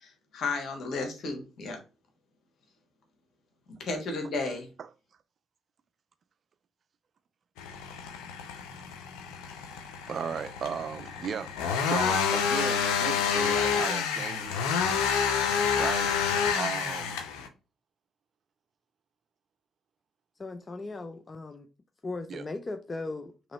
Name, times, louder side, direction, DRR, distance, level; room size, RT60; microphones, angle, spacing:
voice 1, 0.0-1.8 3.8-4.7, left 3 dB, 65° left, 1.3 m, -33 dB
sound 1, 7.6-17.5, left 6 dB, 85° left, 0.5 m, -28 dB
voice 2, 10.1-14.6 15.7-16.3 16.5-17.2 22.3-22.4, right 7 dB, 55° right, 0.3 m, -36 dB
voice 3, 20.4-21.7 22.0-23.5, left 3 dB, 35° left, 0.5 m, -38 dB
3.0 x 2.9 x 4.0 m
supercardioid pair, 55°, 0 cm